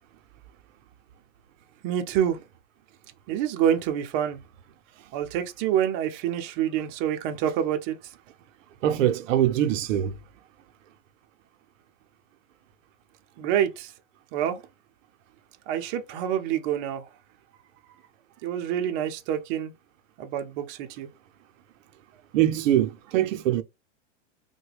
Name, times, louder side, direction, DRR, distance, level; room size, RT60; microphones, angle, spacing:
voice 1, 1.8-2.4 3.3-4.4 5.1-8.0 13.4-13.9 14.3-14.6 15.7-17.1 18.4-19.7 20.2-21.1, right 10 dB, 40° right, 0.5 m, -27 dB
voice 2, 8.8-10.1 22.3-23.6, right 12 dB, 85° right, 0.6 m, -23 dB
3.3 x 2.2 x 3.2 m
supercardioid pair, 140°, 37 cm